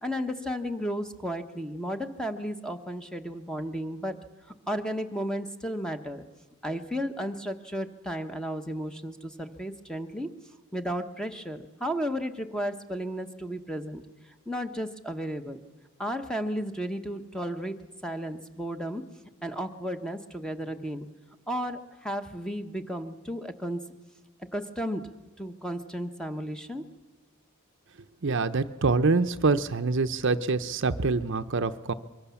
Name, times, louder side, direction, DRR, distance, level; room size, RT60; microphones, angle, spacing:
voice 1, 0.0-4.2 4.7-6.2 6.6-10.3 10.7-14.0 14.5-15.6 16.0-19.0 19.4-21.1 21.5-23.9 24.5-25.1 25.4-26.9, equal, 5° left, 7 dB, 1.0 m, -33 dB
voice 2, 28.2-31.9, right 3 dB, 55° right, 10 dB, 0.7 m, -25 dB
24.5 x 23.0 x 7.1 m, 1.3 s
head